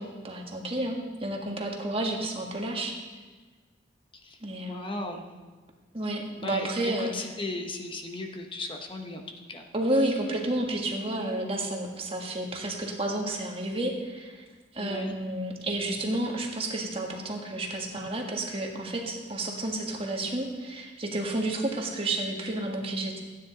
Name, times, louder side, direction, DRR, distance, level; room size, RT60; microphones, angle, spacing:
voice 1, 0.0-2.9 4.4-4.9 5.9-7.3 9.7-14.4 14.7-23.2, right 1 dB, 35° right, 1 dB, 1.6 m, -31 dB
voice 2, 4.6-5.2 6.3-9.7 14.8-15.2, left 2 dB, 30° left, 3 dB, 0.9 m, -36 dB
15.0 x 9.6 x 4.0 m, 1.4 s
head